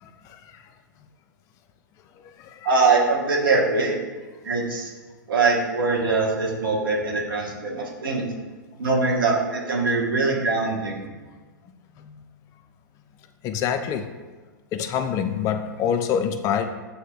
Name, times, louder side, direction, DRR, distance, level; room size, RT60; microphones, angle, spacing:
voice 1, 0.0-0.6 2.4-2.7 12.0-12.1 13.4-14.1 14.7-16.7, left 8 dB, 30° left, 8 dB, 0.4 m, -26 dB
voice 2, 2.6-4.0 4.4-4.9 5.3-8.2 8.8-11.0, right 3 dB, 80° right, -2 dB, 1.1 m, -22 dB
7.5 x 2.8 x 2.3 m, 1.3 s
hypercardioid pair, 115°, 11 cm